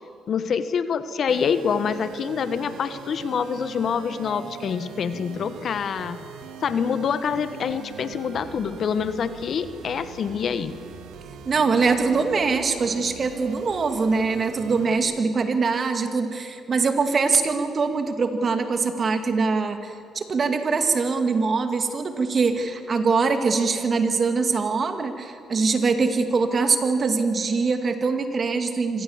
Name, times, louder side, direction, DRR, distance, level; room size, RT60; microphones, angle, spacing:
voice 1, 0.3-6.2 6.6-10.7, left 7 dB, 60° left, 12 dB, 1.3 m, -26 dB
sound 1, 1.3-15.0, right 7 dB, 80° right, 1.8 m, -41 dB
voice 2, 11.4-29.0, right 4 dB, 45° right, 7 dB, 2.3 m, -23 dB
25.0 x 18.5 x 7.3 m, 2.7 s
supercardioid pair, 65°, 0 cm